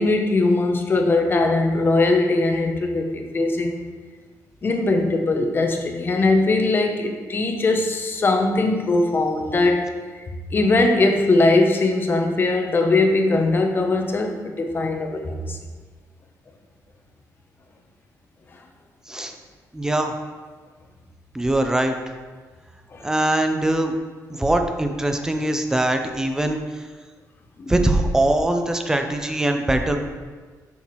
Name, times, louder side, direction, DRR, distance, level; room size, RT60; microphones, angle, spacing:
voice 1, 0.0-3.8 4.6-9.9 10.5-15.6 22.9-23.1 27.6-27.7, left 2 dB, 35° left, 4 dB, 0.8 m, -20 dB
voice 2, 19.7-20.1 21.3-22.0 23.0-23.9 24.3-26.8 27.7-30.1, right 1 dB, 10° right, 5 dB, 0.6 m, -22 dB
7.1 x 5.7 x 3.1 m, 1.4 s
cardioid pair, 120°, 6 cm